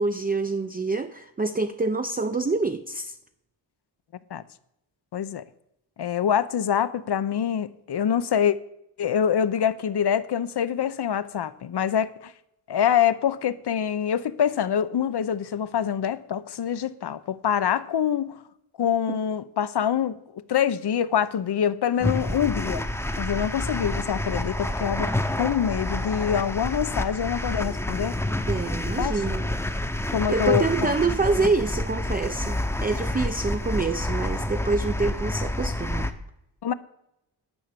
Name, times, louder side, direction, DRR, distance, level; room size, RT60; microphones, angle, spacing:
voice 1, 0.0-3.2 19.1-19.2 28.5-29.5 30.3-36.1, right 3 dB, 20° right, 0.6 m, -26 dB
voice 2, 5.1-5.4 6.0-8.6 9.0-12.3 12.7-18.4 18.8-22.9 23.2-28.1 29.0-29.2 30.1-30.9 36.6-36.7, left 8 dB, 55° left, 0.8 m, -25 dB
sound 1, 22.0-36.1, left 1 dB, 5° left, 0.9 m, -28 dB
10.5 x 5.8 x 6.7 m
cardioid pair, 70°, 48 cm